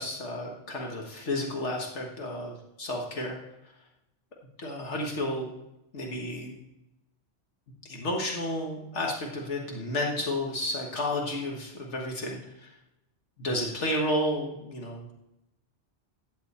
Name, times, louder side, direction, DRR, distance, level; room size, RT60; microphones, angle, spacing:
voice 1, 0.0-3.4 4.6-5.5 5.9-6.6 7.9-12.7 13.4-15.1, left 1 dB, 80° left, 0 dB, 1.9 m, -31 dB
15.5 x 9.1 x 4.3 m, 0.92 s
omnidirectional pair, 1.2 m